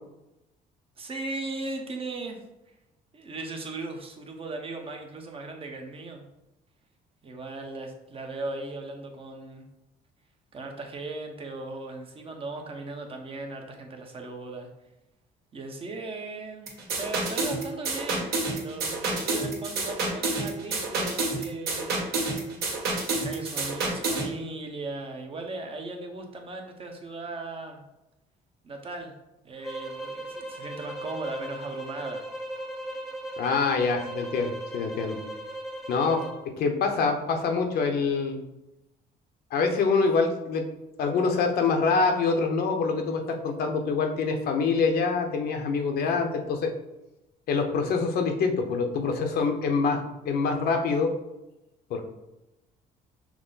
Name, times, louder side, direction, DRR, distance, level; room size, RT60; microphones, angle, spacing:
voice 1, 1.0-2.4 3.1-6.3 7.2-9.7 10.5-14.7 15.5-22.1 23.1-27.8 28.6-29.1 29.4-32.2, right 2 dB, 35° right, 3 dB, 0.8 m, -37 dB
sound 1, 16.7-24.3, right 3 dB, 70° right, 1.6 m, -29 dB
sound 2, 29.6-36.4, right 1 dB, ahead, 0.9 m, -38 dB
voice 2, 33.4-35.2 35.9-36.2 36.6-38.4 39.5-40.6 41.0-46.7 47.5-51.1 51.9-52.0, left 4 dB, 65° left, 4 dB, 0.8 m, -25 dB
5.9 x 2.1 x 3.9 m, 0.94 s
cardioid pair, 110°, 17 cm